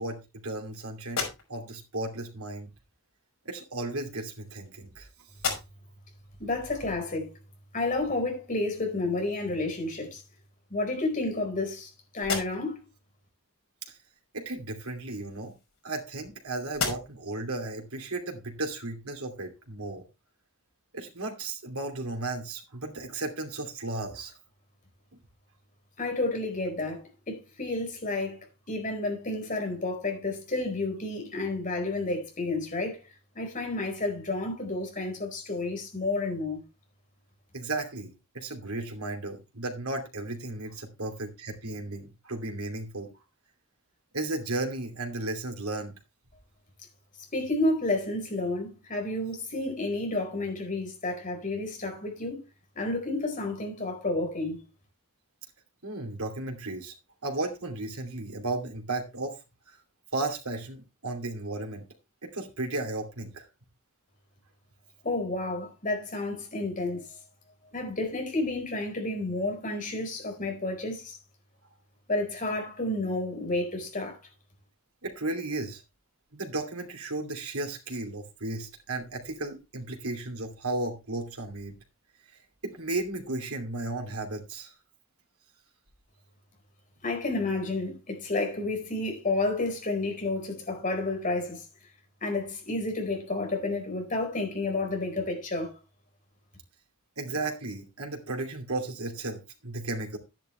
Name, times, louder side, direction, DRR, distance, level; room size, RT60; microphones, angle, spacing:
voice 1, 0.0-2.7 3.4-5.1 13.9-14.0 14.3-15.5 15.8-20.0 20.9-24.3 37.5-43.1 44.1-45.9 55.8-56.9 57.2-59.3 59.7-59.8 60.1-61.8 62.2-63.5 75.0-75.8 76.3-81.8 82.6-84.7 97.2-100.2, right 2 dB, 85° right, 2.7 m, -34 dB
sound 1, 1.0-1.9 3.0-3.2 4.1-5.0 5.3-6.0 6.5-6.6 9.3-9.4 9.8-10.5 11.1-11.8 12.1-12.9 14.9-16.3 16.7-17.4, left 5 dB, 65° left, 5.9 m, -36 dB
voice 2, 6.4-7.3 7.7-10.2 10.7-12.8 26.0-28.4 28.7-33.0 33.3-36.6 47.3-52.4 52.7-54.6 65.0-67.0 67.7-71.2 72.1-74.2 87.0-91.6 92.2-95.7, left 2 dB, 40° left, 4.7 m, -30 dB
11.5 x 10.5 x 3.2 m
head